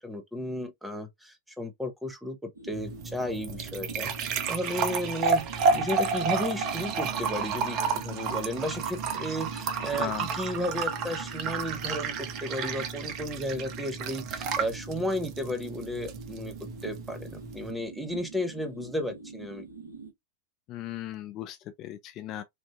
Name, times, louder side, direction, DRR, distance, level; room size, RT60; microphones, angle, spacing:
voice 1, 0.0-16.5 16.8-19.6, left 1 dB, ahead, 0.8 m, -34 dB
sound 1, 2.5-20.1, right 5 dB, 75° right, 0.7 m, -44 dB
sound 2, 2.7-17.7, right 5 dB, 40° right, 0.6 m, -31 dB
voice 2, 20.7-22.4, left 12 dB, 35° left, 0.3 m, -37 dB
3.5 x 2.4 x 2.3 m
figure-of-eight pair, 90°, 0 cm